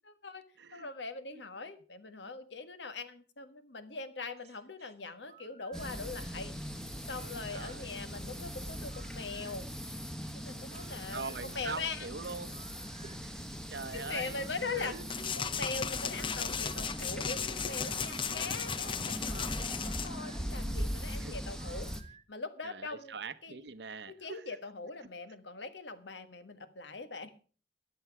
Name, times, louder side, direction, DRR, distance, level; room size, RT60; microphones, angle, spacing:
voice 1, 0.1-0.4 0.7-6.5 7.1-9.7 10.3-11.2 11.5-12.1 13.9-15.0 15.3-21.9 22.3-23.1 23.4-23.6 24.1-27.3, left 4 dB, 75° left, 1.5 m, -41 dB
voice 2, 0.6-0.9 1.3-1.4 7.5-7.9 11.1-12.5 13.0-15.3 20.6-20.8 21.2-21.4 22.6-24.6, right 4 dB, 65° right, 0.8 m, -43 dB
sound 1, 4.4-22.2, right 7 dB, 35° right, 1.3 m, -60 dB
sound 2, 5.7-22.0, equal, 5° left, 1.2 m, -40 dB
sound 3, 15.1-20.1, left 6 dB, 30° left, 0.5 m, -36 dB
14.0 x 10.5 x 4.8 m
head